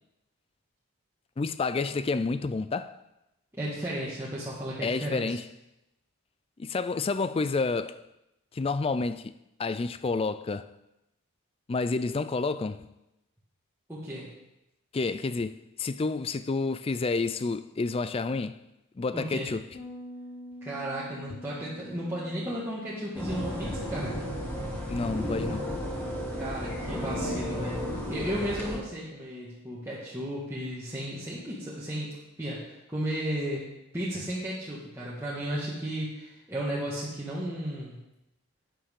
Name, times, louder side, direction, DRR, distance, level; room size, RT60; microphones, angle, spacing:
voice 1, 1.4-2.9 4.8-5.4 6.6-8.0 8.5-9.3 9.6-10.7 11.7-12.9 14.9-18.6 19.0-19.6 24.9-25.6, left 3 dB, 25° left, 0.3 m, -29 dB
voice 2, 3.5-5.4 13.9-14.3 19.1-19.5 20.6-24.2 26.4-27.8 28.1-32.1 32.4-32.6 32.9-33.6 33.9-38.0, right 1 dB, 10° right, 1.6 m, -34 dB
Bass guitar, 19.7-29.1, equal, 50° left, 1.8 m, -49 dB
sound 1, 23.1-28.8, equal, 10° left, 2.1 m, -33 dB
11.5 x 8.8 x 3.7 m
head